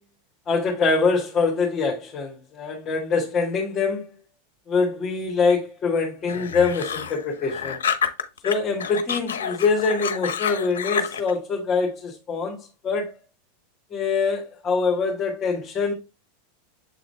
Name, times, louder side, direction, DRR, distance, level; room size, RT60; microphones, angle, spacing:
voice 1, 0.5-4.1 4.7-7.8 8.4-13.1 13.9-15.9, left 4 dB, 30° left, 1.9 m, -24 dB
sound 1, 6.3-8.5 8.8-11.3, left 7 dB, 80° left, 0.8 m, -28 dB
7.7 x 3.8 x 3.3 m
hypercardioid pair, 95°, 0 cm